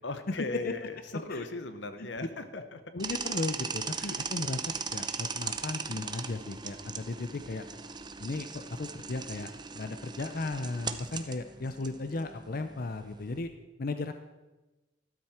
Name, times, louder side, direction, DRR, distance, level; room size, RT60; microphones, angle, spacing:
voice 1, 0.0-2.8 4.0-4.2, left 3 dB, 85° left, 9 dB, 1.2 m, -38 dB
voice 2, 2.9-4.6 4.9-7.6 8.2-9.5 9.7-13.5 13.8-14.1, left 2 dB, 55° left, 8 dB, 0.6 m, -36 dB
sound 1, 3.0-13.4, right 5 dB, 25° right, 0.7 m, -39 dB
13.0 x 12.5 x 4.4 m, 1.1 s
head